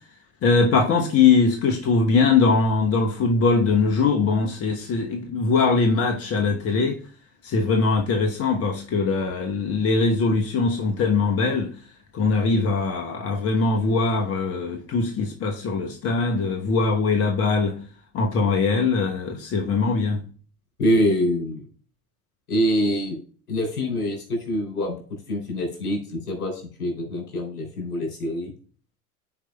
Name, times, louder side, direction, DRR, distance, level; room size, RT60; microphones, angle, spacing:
voice 1, 0.4-7.0 7.4-11.7 12.1-17.8 18.1-20.2, left 4 dB, 30° left, 1.0 m, -21 dB
voice 2, 20.8-21.7 22.5-23.2 23.5-28.5, equal, 75° left, 3.3 m, -25 dB
13.5 x 4.7 x 2.3 m
figure-of-eight pair, 75°, 44 cm